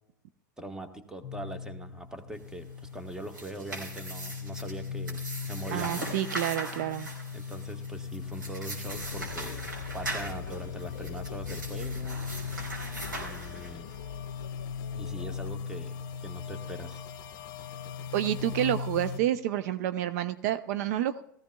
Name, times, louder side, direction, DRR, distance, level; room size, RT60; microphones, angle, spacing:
voice 1, 0.6-6.3 7.3-9.6 9.9-12.2 13.1-13.9 14.9-17.0, right 1 dB, 5° right, 7 dB, 1.1 m, -42 dB
sound 1, 1.2-19.2, left 6 dB, 40° left, 1.0 m, -39 dB
sound 2, 3.1-14.0, right 2 dB, 90° right, 3.8 m, -40 dB
voice 2, 5.7-7.1 18.1-21.2, right 12 dB, 55° right, 12 dB, 0.5 m, -29 dB
sound 3, 8.8-15.6, left 8 dB, 70° left, 0.4 m, -43 dB
18.0 x 14.5 x 2.3 m, 0.79 s
figure-of-eight pair, 95°, 10 cm